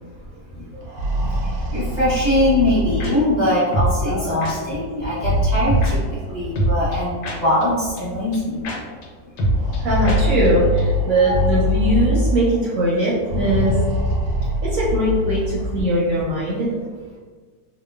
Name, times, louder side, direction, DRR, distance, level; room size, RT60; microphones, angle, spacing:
sound 1, 0.7-3.6 5.0-6.7 7.7-7.8 8.1-8.2 9.5-12.6 13.2-15.8, equal, 85° right, 1.2 m, -23 dB
voice 1, 1.7-6.0 6.3-8.6 11.2-11.4 13.5-13.6, left 1 dB, 35° left, -12 dB, 0.8 m, -21 dB
sound 2, 3.0-3.1 3.7-4.0 4.4-4.5 5.7-5.9 6.6-7.6 8.0-8.1 8.3-8.4 8.6-8.8 9.0-9.1 9.4-9.8 10.0-10.2 10.4-10.5 10.8-10.9, right 1 dB, 90° left, 1.2 m, -21 dB
voice 2, 9.8-13.7 14.6-16.7, right 1 dB, 65° right, -7 dB, 0.9 m, -20 dB
2.9 x 2.0 x 2.2 m, 1.5 s
omnidirectional pair, 1.7 m